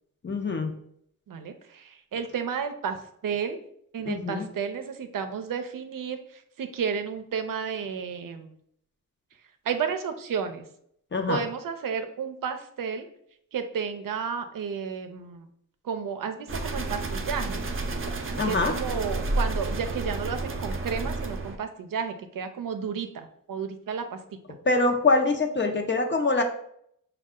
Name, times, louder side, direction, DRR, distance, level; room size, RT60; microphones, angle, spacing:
voice 1, 0.2-0.7 4.1-4.5 11.1-11.4 18.3-18.7 24.6-26.4, left 3 dB, 35° left, 4 dB, 0.7 m, -24 dB
voice 2, 1.3-3.0 3.2-3.6 3.9-8.5 9.7-10.7 11.3-13.1 13.5-15.5 15.8-17.6 18.5-24.2, right 6 dB, 85° right, 8 dB, 0.5 m, -32 dB
sound 1, 16.5-21.6, right 2 dB, 40° right, 0.6 m, -30 dB
5.2 x 2.3 x 3.6 m, 0.70 s
wide cardioid pair, 75°, 32 cm